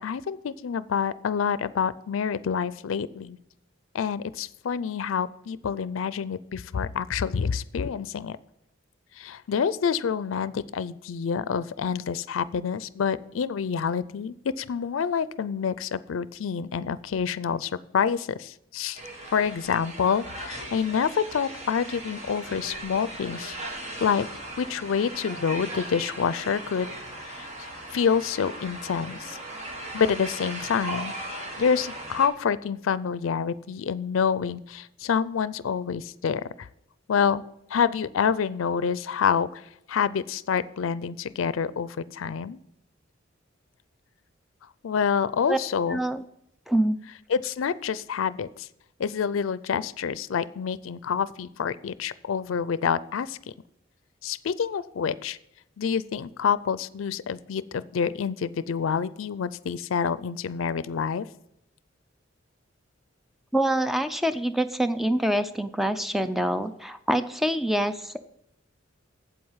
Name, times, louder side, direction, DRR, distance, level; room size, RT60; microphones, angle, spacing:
voice 1, 0.0-3.4 3.9-8.4 9.2-19.0 19.3-23.6 24.0-24.3 24.6-26.9 27.2-27.5 27.9-29.4 29.9-36.7 37.1-37.4 37.7-39.6 39.9-42.6 44.8-46.0 47.0-48.7 49.0-53.4 54.2-55.4 55.8-61.3, left 6 dB, 90° left, 17 dB, 0.4 m, -27 dB
sound 1, 18.9-32.3, right 1 dB, 35° right, 1.4 m, -38 dB
voice 2, 45.9-46.2 46.7-47.0 63.5-68.2, right 1 dB, ahead, 10 dB, 0.5 m, -25 dB
8.1 x 7.8 x 5.6 m, 0.80 s
head